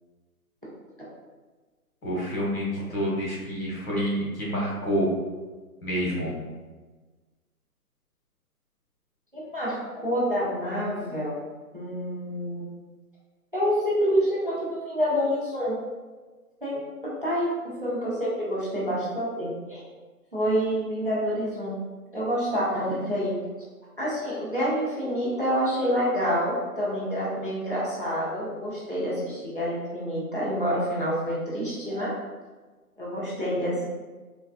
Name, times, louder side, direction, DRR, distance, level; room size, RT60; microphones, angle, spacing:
voice 1, 2.0-5.1 5.8-6.3, equal, 65° left, -4 dB, 1.4 m, -28 dB
voice 2, 9.3-11.4 11.7-12.7 13.5-15.8 16.6-19.8 20.3-21.8 22.1-23.3 24.0-32.1 33.0-33.9, equal, 35° right, -7 dB, 0.5 m, -27 dB
3.4 x 2.2 x 2.3 m, 1.3 s
hypercardioid pair, 180°, 46 cm